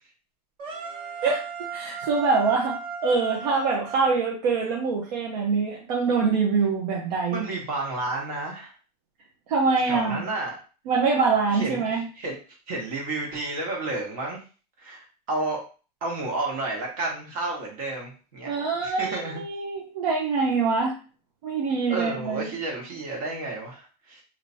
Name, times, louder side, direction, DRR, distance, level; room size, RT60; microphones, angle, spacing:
sound 1, 0.6-4.7, right 6 dB, 25° right, 0.6 m, -36 dB
voice 1, 1.7-7.4 9.5-10.2 10.9-12.0 18.5-20.9 21.4-22.5, right 4 dB, 75° right, -2 dB, 0.9 m, -24 dB
voice 2, 7.3-8.7 9.8-10.5 11.5-12.3 12.7-14.4 14.8-15.6 16.0-18.5 18.8-19.4 21.9-24.2, right 2 dB, 60° right, -1 dB, 1.5 m, -31 dB
3.3 x 2.9 x 2.7 m, 0.36 s
supercardioid pair, 175°, 21 cm